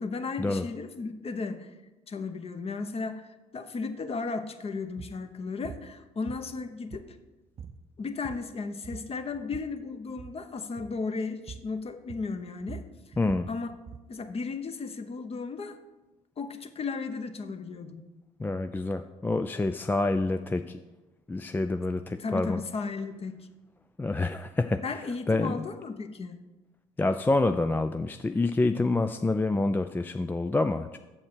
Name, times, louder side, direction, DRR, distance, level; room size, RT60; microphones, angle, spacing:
voice 1, 0.0-1.7 2.1-7.2 8.0-12.8 13.5-13.7 14.1-15.8 16.4-18.0 22.2-23.4 24.8-26.4, left 4 dB, 35° left, 8 dB, 0.9 m, -35 dB
sound 1, 4.9-5.2 5.6-5.9 6.3-7.3 7.6-7.8 8.1-8.6 8.8-9.8 10.1-10.4 10.8-11.0 11.5-11.7 12.1-14.1, right 6 dB, 35° right, 0.6 m, -44 dB
voice 2, 13.2-13.5 18.4-20.8 21.3-22.6 24.0-25.0 25.3-25.6 27.0-31.0, left 2 dB, 10° left, 8 dB, 0.3 m, -27 dB
7.3 x 5.4 x 6.2 m, 1.1 s
hypercardioid pair, 55°, 18 cm